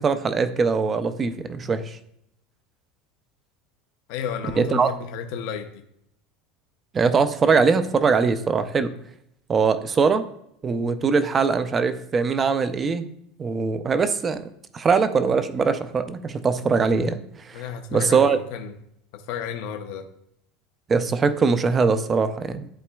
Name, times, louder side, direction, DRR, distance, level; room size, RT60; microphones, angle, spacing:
voice 1, 0.0-2.0 4.6-4.9 6.9-8.9 9.5-10.2 10.6-13.1 13.4-14.4 14.7-17.2 17.5-17.6 17.9-18.4 20.9-22.7, right 5 dB, 20° right, 11 dB, 0.4 m, -21 dB
voice 2, 4.1-5.8 17.5-18.7 19.1-20.1, left 7 dB, 60° left, 6 dB, 0.6 m, -32 dB
11.5 x 4.1 x 2.3 m, 0.75 s
supercardioid pair, 165°, 0 cm